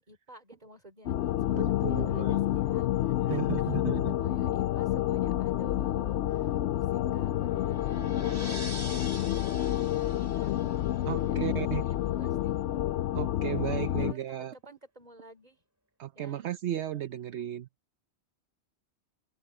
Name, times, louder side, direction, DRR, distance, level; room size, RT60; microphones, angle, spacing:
voice 1, 0.0-3.4 4.2-8.7 9.3-9.6 9.9-10.5 11.1-12.6 14.0-15.6 16.1-16.4, right 2 dB, 35° right, 4.3 m, -52 dB
sound 1, 1.1-14.1, left 13 dB, 80° left, 0.9 m, -29 dB
voice 2, 1.5-2.4 3.3-4.1 11.0-11.8 13.1-14.5 16.0-17.7, right 12 dB, 75° right, 1.0 m, -34 dB
sound 2, 6.4-11.5, equal, 15° right, 4.6 m, -45 dB
omnidirectional pair, 1.2 m